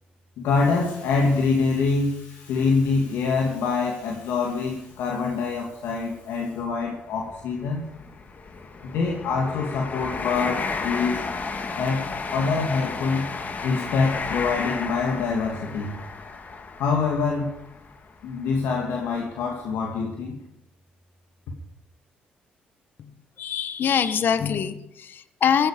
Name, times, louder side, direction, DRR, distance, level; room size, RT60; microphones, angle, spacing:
voice 1, 0.4-7.8 8.8-11.2 11.8-13.3 13.6-16.0 16.8-17.5 18.2-20.3, left 4 dB, 80° left, 0 dB, 2.5 m, -25 dB
sound 1, 2.6-2.8 3.4-3.5 4.6-4.7 5.0-5.2 5.9-18.6 19.1-19.3, left 4 dB, 45° left, 2.1 m, -33 dB
voice 2, 23.4-25.7, left 8 dB, 60° left, 12 dB, 1.1 m, -24 dB
16.5 x 15.0 x 5.2 m, 0.80 s
supercardioid pair, 65°, 4 cm